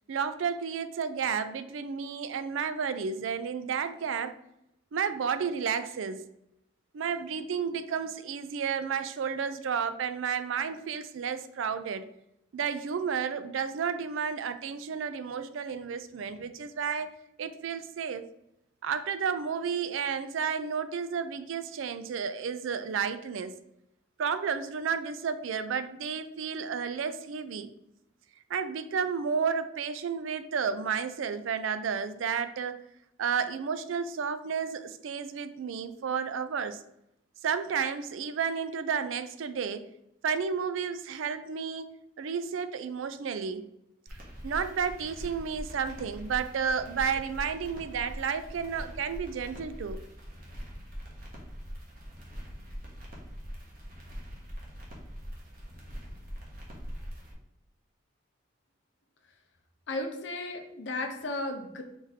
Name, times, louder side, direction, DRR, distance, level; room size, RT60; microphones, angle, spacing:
voice 1, 0.1-4.3 4.9-6.3 6.9-12.1 12.5-17.1 17.4-18.3 18.8-23.5 24.2-27.7 28.5-32.8 33.2-36.8 37.4-39.9 40.2-41.9 42.2-43.6 44.4-50.0, right 6 dB, 85° right, 11 dB, 0.4 m, -32 dB
sound 1, 44.1-57.3, equal, 50° right, 1.2 m, -43 dB
voice 2, 59.9-61.8, left 2 dB, 65° left, 5 dB, 0.7 m, -34 dB
4.7 x 2.6 x 4.0 m, 0.81 s
head